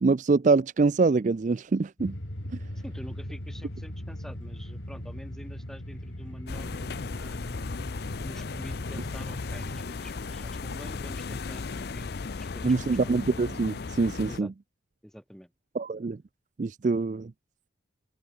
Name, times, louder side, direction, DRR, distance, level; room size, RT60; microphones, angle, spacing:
voice 1, 0.0-2.2 12.6-14.5 15.8-16.2 16.6-17.3, right 4 dB, 40° right, 0.4 m, -24 dB
sound 1, 2.0-9.9, equal, 80° left, 4.4 m, -39 dB
voice 2, 2.8-7.7 8.2-12.1 12.4-13.1 14.3-14.5 15.0-15.5, equal, ahead, 5.9 m, -46 dB
sound 2, 6.5-14.4, left 4 dB, 55° left, 0.5 m, -36 dB
head